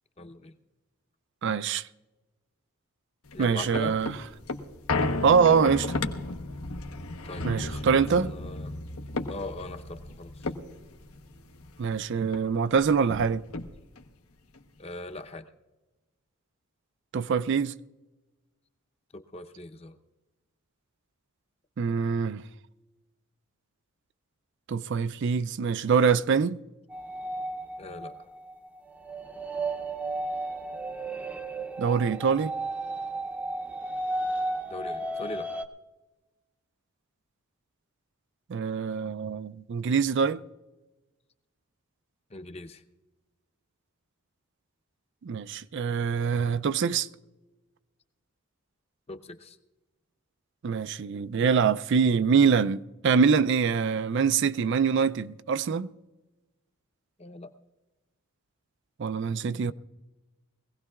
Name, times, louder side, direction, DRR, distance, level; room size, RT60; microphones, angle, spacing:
voice 1, 0.2-0.5 3.3-3.9 7.2-8.7 9.3-10.3 14.8-15.5 19.1-20.0 27.8-28.1 34.7-35.5 42.3-42.8 49.1-49.6 57.2-57.5, left 2 dB, 30° left, 0.7 m, -40 dB
voice 2, 1.4-1.9 3.4-4.1 5.2-6.0 7.4-8.3 11.8-13.4 17.1-17.7 21.8-22.4 24.7-26.6 31.8-32.5 38.5-40.4 45.2-47.1 50.6-55.9 59.0-59.7, right 6 dB, 55° right, 0.4 m, -24 dB
sound 1, 3.3-12.0 12.3-12.4 12.7-14.1 14.5-14.6, left 2 dB, 85° left, 1.0 m, -34 dB
sound 2, 26.9-35.7, right 2 dB, 5° right, 0.6 m, -34 dB
22.5 x 17.0 x 2.3 m
head